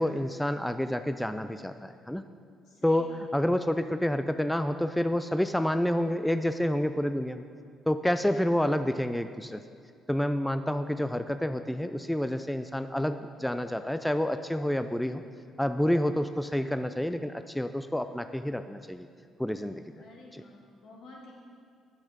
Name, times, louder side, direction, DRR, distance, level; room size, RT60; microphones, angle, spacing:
voice 1, 0.0-2.2 2.8-7.5 7.9-9.6 10.1-15.2 15.6-19.1 19.4-19.8 20.3-20.4, left 1 dB, 5° left, 9 dB, 0.3 m, -29 dB
voice 2, 2.6-3.2 19.9-21.3, left 2 dB, 70° left, -3 dB, 1.8 m, -51 dB
7.5 x 6.3 x 5.0 m, 2.2 s
hypercardioid pair, 55°, 0 cm